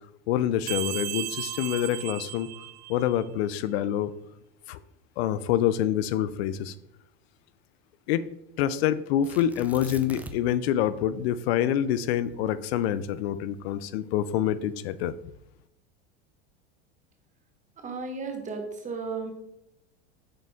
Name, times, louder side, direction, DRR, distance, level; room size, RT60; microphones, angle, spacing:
voice 1, 0.3-2.5 2.9-4.1 4.7-4.8 5.2-6.7 8.1-8.3 8.6-15.1, left 10 dB, 80° left, 0.5 m, -26 dB
sound 1, 0.7-3.2, right 14 dB, 85° right, 0.5 m, -35 dB
Tearing, 9.2-10.6 10.9-11.0 11.6-13.9 14.6-15.1, right 2 dB, 5° right, 0.3 m, -44 dB
voice 2, 17.8-19.3, right 4 dB, 25° right, 1.2 m, -34 dB
6.5 x 4.2 x 3.5 m
supercardioid pair, 120°, 31 cm